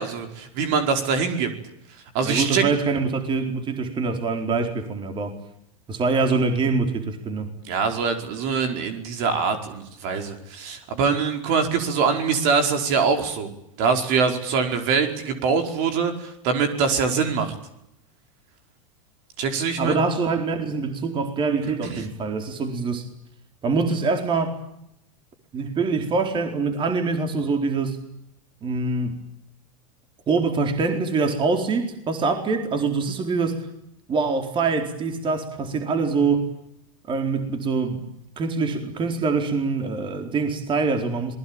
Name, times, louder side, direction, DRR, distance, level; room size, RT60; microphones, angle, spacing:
voice 1, 0.0-1.5 2.1-2.6 7.6-13.5 13.8-17.5 19.4-20.0 21.8-22.0, right 5 dB, 55° right, 6 dB, 5.0 m, -23 dB
voice 2, 2.2-5.4 5.9-7.5 19.8-23.1 23.6-24.6 25.5-28.0 28.6-29.2 30.3-33.7 34.1-36.5 37.1-38.0 38.4-41.4, right 4 dB, 30° right, 5 dB, 4.4 m, -24 dB
26.5 x 21.0 x 8.9 m, 0.80 s
hypercardioid pair, 115°, 17 cm